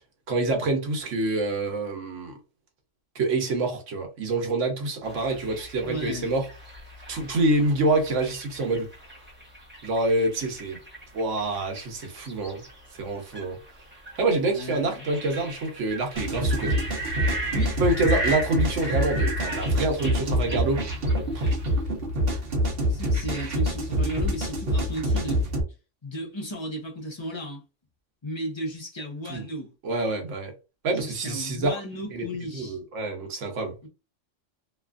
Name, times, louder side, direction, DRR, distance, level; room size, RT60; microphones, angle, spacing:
voice 1, 0.3-2.3 3.1-6.5 7.1-8.9 9.8-10.8 11.1-12.6 13.0-13.6 14.2-16.8 17.8-20.8 21.3-21.5 29.3-29.5 29.8-30.5 30.8-31.8 32.1-32.3 32.5-33.7, right 2 dB, 75° right, 1.2 m, -26 dB
sound 1, 5.0-21.8, right 2 dB, 10° right, 0.7 m, -38 dB
voice 2, 5.8-6.3 14.5-15.0 17.5-17.8 22.9-25.4 26.0-27.6 28.2-29.7 30.9-32.8 33.8-33.9, equal, 25° left, 0.8 m, -35 dB
sound 2, 16.2-25.6, equal, 55° right, 1.0 m, -26 dB
2.9 x 2.4 x 2.4 m
omnidirectional pair, 1.3 m